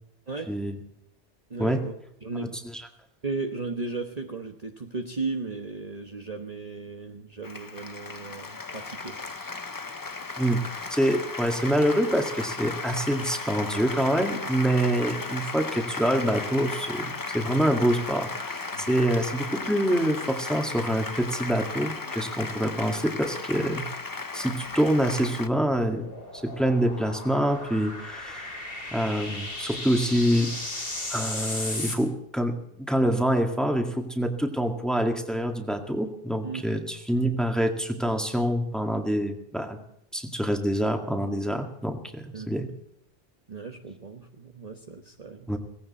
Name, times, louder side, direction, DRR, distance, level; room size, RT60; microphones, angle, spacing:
voice 1, 0.3-0.6 1.5-1.9 2.2-2.6 3.2-9.5 18.7-18.9 36.4-36.6 42.3-42.5 43.5-45.6, right 3 dB, 35° right, 3 dB, 1.2 m, -35 dB
Applause, 7.4-25.5, left 3 dB, 25° left, 0.6 m, -35 dB
voice 2, 10.9-23.8 24.3-26.1 26.4-28.6 28.9-30.5 31.1-39.8 40.1-42.7 45.5-45.6, right 1 dB, ahead, 4 dB, 1.9 m, -26 dB
sound 1, 24.4-32.0, left 2 dB, 55° left, 3.1 m, -37 dB
17.5 x 16.5 x 4.3 m, 0.78 s
omnidirectional pair, 1.2 m